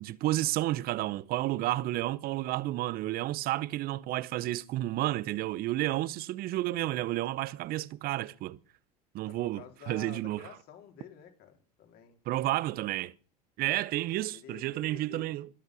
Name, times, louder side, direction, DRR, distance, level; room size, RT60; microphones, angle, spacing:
voice 1, 0.0-8.6 9.1-10.5 12.3-13.1 13.6-15.5, right 16 dB, 50° right, 0.8 m, -31 dB
voice 2, 9.2-12.2 14.3-15.3, left 9 dB, 55° left, 4.1 m, -50 dB
21.5 x 8.1 x 6.3 m
hypercardioid pair, 80°, 19 cm